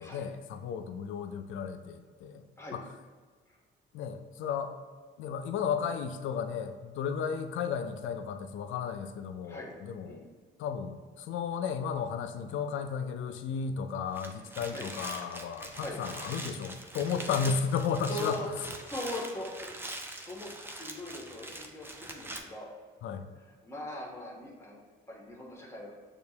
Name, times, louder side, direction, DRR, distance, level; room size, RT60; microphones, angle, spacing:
voice 1, 0.0-2.4 2.7-2.9 3.9-4.7 5.2-10.2 10.6-18.6 23.0-23.3, left 6 dB, 75° left, 8 dB, 0.4 m, -34 dB
sound 1, 14.0-22.4, right 1 dB, 10° right, 0.5 m, -43 dB
voice 2, 18.1-18.5 18.9-19.7 20.3-20.5 20.8-22.7 23.6-24.8 25.1-25.9, left 1 dB, 15° left, -2 dB, 1.1 m, -40 dB
6.5 x 2.4 x 2.8 m, 1.5 s
cardioid pair, 90°, 20 cm